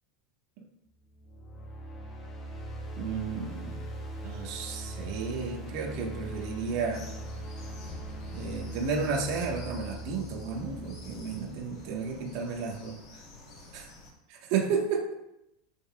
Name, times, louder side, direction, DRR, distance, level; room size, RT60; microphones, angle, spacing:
sound 1, 1.1-12.2, right 1 dB, 25° left, 1.0 m, -41 dB
voice 1, 3.0-3.8 4.2-7.1 8.3-13.0 13.7-13.8 14.4-15.1, right 5 dB, 55° right, 0 dB, 1.5 m, -32 dB
sound 2, 6.9-14.1, left 1 dB, 45° left, 2.2 m, -49 dB
11.0 x 5.9 x 2.5 m, 0.87 s
supercardioid pair, 155°, 0 cm